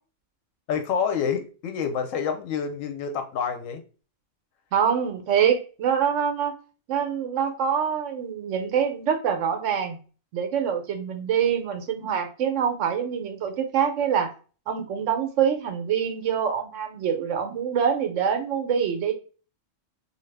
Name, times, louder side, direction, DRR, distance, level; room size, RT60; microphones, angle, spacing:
voice 1, 0.7-3.8, left 7 dB, 85° left, 6 dB, 1.0 m, -28 dB
voice 2, 4.7-6.5 6.9-10.0 10.3-14.3 14.7-19.1, right 8 dB, 75° right, 6 dB, 1.0 m, -25 dB
2.7 x 2.4 x 3.2 m, 0.37 s
omnidirectional pair, 1.3 m